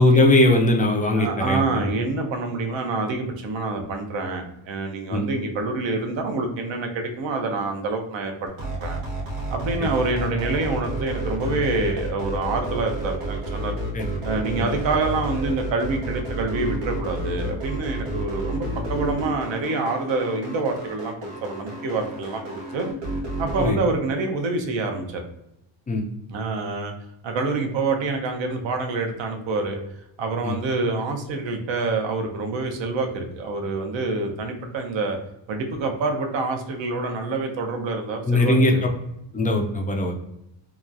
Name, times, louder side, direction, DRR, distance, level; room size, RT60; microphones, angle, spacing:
voice 1, 0.0-1.9 5.1-5.3 9.8-9.9 13.9-14.1 14.6-14.7 18.1-18.2 23.6-23.8 25.9-26.0 30.4-30.6 38.2-38.7 39.3-40.1, left 2 dB, 20° left, 2 dB, 0.3 m, -20 dB
voice 2, 1.2-9.0 9.5-13.7 14.2-22.9 23.4-25.2 26.3-26.9 27.2-29.8 30.2-35.2 35.5-38.9, right 3 dB, 65° right, 4 dB, 0.7 m, -27 dB
sound 1, 8.5-23.7, right 1 dB, 90° right, 0.9 m, -30 dB
3.0 x 2.2 x 2.5 m, 0.82 s
cardioid pair, 95°, 49 cm